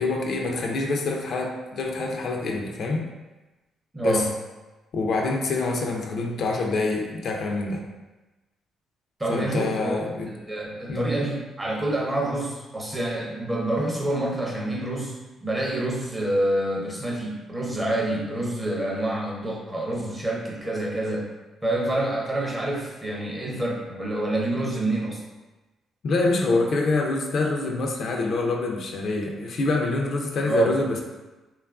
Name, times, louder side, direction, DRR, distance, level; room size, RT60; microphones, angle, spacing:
voice 1, 0.0-3.1 4.0-4.2 4.9-7.9 9.3-10.3 10.9-11.1 26.0-31.0, left 3 dB, 60° left, 1 dB, 0.3 m, -26 dB
voice 2, 3.9-4.3 9.2-10.0 10.3-15.1 15.4-21.3 21.6-25.2 30.5-30.7, right 1 dB, 15° right, -2 dB, 0.6 m, -27 dB
2.8 x 2.2 x 2.3 m, 1.1 s
cardioid pair, 90°, 0 cm